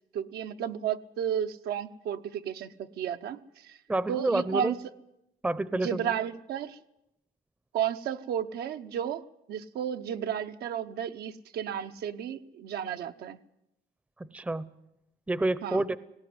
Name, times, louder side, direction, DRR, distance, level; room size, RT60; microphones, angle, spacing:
voice 1, 0.1-3.8 4.1-4.8 5.7-6.8 7.7-9.2 9.5-13.4 15.6-15.8, right 9 dB, 65° right, 8 dB, 1.0 m, -33 dB
voice 2, 3.9-4.7 5.4-6.2 14.2-14.7 15.3-16.0, right 2 dB, 10° right, 16 dB, 0.7 m, -29 dB
19.0 x 17.5 x 9.6 m, 0.86 s
cardioid pair, 110°, 17 cm